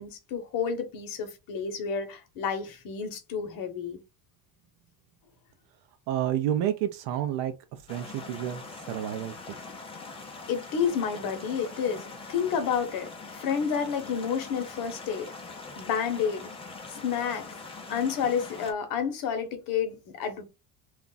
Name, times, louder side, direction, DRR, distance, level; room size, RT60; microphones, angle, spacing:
voice 1, 0.0-4.0 10.5-15.3 15.8-16.5 16.9-17.5 17.9-20.4, left 7 dB, 50° left, 0.9 m, -30 dB
voice 2, 6.1-9.3, right 11 dB, 75° right, 0.6 m, -30 dB
sound 1, 7.9-18.7, left 3 dB, 15° left, 0.5 m, -43 dB
2.4 x 2.2 x 3.8 m
cardioid pair, 140°, 42 cm